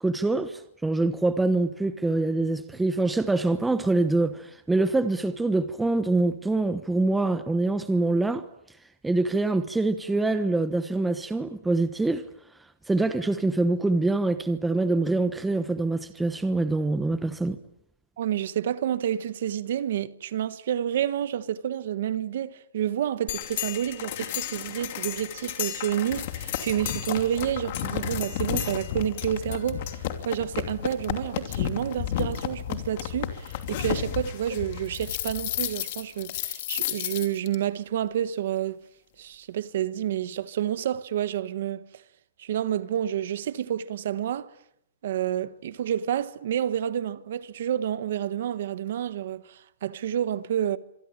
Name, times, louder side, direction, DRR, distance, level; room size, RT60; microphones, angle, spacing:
voice 1, 0.0-8.4 9.0-12.2 12.9-17.6, right 2 dB, 5° right, 1.1 m, -25 dB
voice 2, 18.2-38.8 39.2-41.8 42.4-44.5 45.0-50.8, right 10 dB, 55° right, 1.3 m, -29 dB
sound 1, 23.3-37.6, left 11 dB, 40° left, 2.7 m, -32 dB
26.0 x 23.5 x 9.0 m
hypercardioid pair, 170°, 0 cm